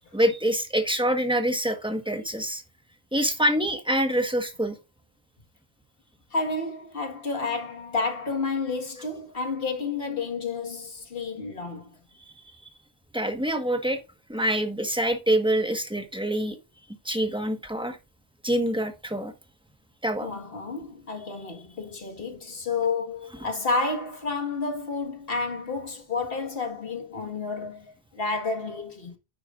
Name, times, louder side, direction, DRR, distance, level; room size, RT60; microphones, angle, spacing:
voice 1, 0.1-2.6 3.1-4.7 13.1-14.0 14.3-16.6 17.0-18.0 18.4-19.3 20.0-20.3, right 1 dB, 5° right, 1.2 m, -25 dB
voice 2, 6.3-11.9 20.2-29.2, left 3 dB, 65° left, 1.8 m, -30 dB
9.9 x 9.0 x 2.4 m
omnidirectional pair, 1.0 m